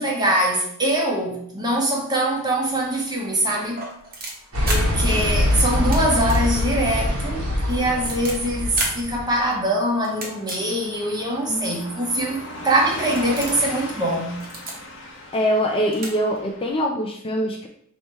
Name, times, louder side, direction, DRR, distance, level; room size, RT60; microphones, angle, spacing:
voice 1, 0.0-3.9 4.6-14.4, right 1 dB, 20° right, 0.9 m, -23 dB
Car passing by / Truck, 2.5-16.8, left 1 dB, 65° left, 0.9 m, -40 dB
sound 1, 3.6-4.8 5.7-6.0 6.3-6.4 6.8-6.9 7.5-8.3 8.8-8.9 10.0-10.6 11.2-11.3 12.2-12.3 12.7-12.9 13.2-13.6 14.3-14.7 15.6-15.7 15.9-16.1 16.4-16.5, right 2 dB, 45° right, 1.0 m, -31 dB
sound 2, 4.5-9.3, left 1 dB, 80° right, 1.3 m, -23 dB
voice 2, 15.3-17.7, equal, 25° left, 0.4 m, -23 dB
3.2 x 2.8 x 4.5 m
head